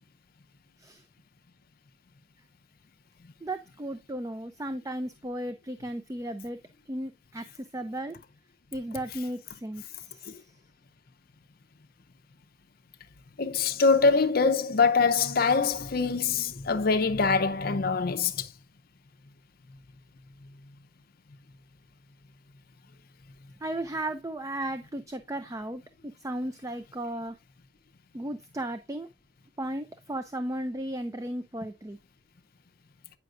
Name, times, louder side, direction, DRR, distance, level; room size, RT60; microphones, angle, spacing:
voice 1, 3.4-6.6 6.9-8.2 8.7-10.5 23.6-27.4 28.1-29.1 29.6-32.0, right 1 dB, 15° right, 0.4 m, -35 dB
voice 2, 13.4-18.5, left 4 dB, 45° left, 0.5 m, -24 dB
9.0 x 5.7 x 2.5 m
head